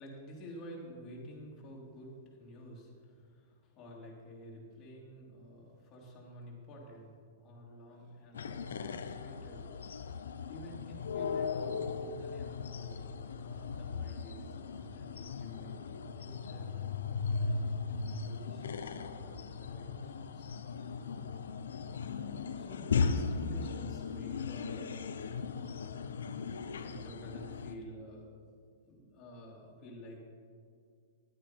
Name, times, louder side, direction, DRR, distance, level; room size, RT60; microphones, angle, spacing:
voice 1, 0.0-9.9 10.5-21.1 22.0-22.3 22.5-25.0 26.8-28.3 28.9-30.2, equal, 30° left, -4 dB, 2.8 m, -50 dB
sound 1, 8.3-27.7, left 5 dB, 85° left, 0.6 m, -37 dB
10.5 x 8.9 x 5.3 m, 2.1 s
hypercardioid pair, 125°, 0 cm